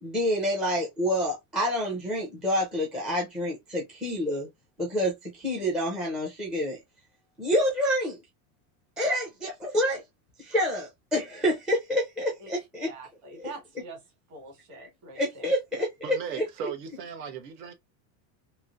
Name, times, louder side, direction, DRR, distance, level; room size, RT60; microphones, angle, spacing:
voice 1, 0.0-4.5 4.8-6.8 7.4-8.2 9.0-10.0 10.4-12.9 15.2-16.4, equal, ahead, 0.4 m, -28 dB
voice 2, 12.8-14.0 14.3-15.5, right 2 dB, 35° right, 1.6 m, -45 dB
voice 3, 16.0-17.7, right 8 dB, 85° right, 1.1 m, -37 dB
3.1 x 2.9 x 2.4 m
supercardioid pair, 160°, 49 cm